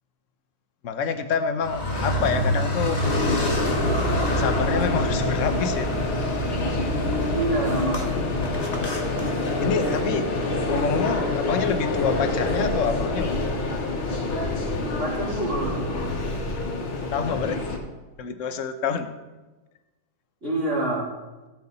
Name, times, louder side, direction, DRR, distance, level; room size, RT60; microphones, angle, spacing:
voice 1, 0.8-3.0 4.4-5.9 9.6-10.3 10.7-13.3 17.1-17.8 18.2-19.1, left 6 dB, 50° left, 8 dB, 1.0 m, -27 dB
Car, 1.6-9.9, equal, 20° left, 1.5 m, -28 dB
sound 1, 3.0-17.8, left 2 dB, 75° left, 2.4 m, -26 dB
voice 2, 7.3-8.1 15.0-16.1 20.4-21.1, right 2 dB, 35° right, -4 dB, 3.6 m, -27 dB
17.5 x 8.8 x 4.1 m, 1.2 s
omnidirectional pair, 2.3 m